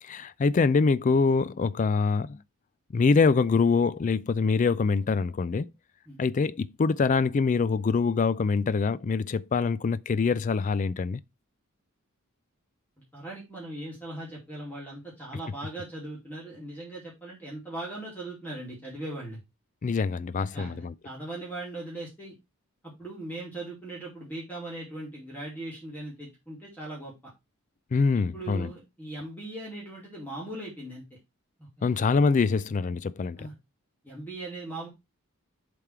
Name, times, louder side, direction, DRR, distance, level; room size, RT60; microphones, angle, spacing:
voice 1, 0.0-2.4 2.9-5.7 6.2-11.2 19.8-20.9 27.9-28.7 31.8-33.5, left 4 dB, 35° left, 0.3 m, -24 dB
voice 2, 13.1-19.4 20.5-22.3 22.8-27.1 28.3-31.0 31.6-32.0 33.4-33.5 34.0-34.9, right 2 dB, 10° left, 2.4 m, -39 dB
7.3 x 3.5 x 4.4 m
head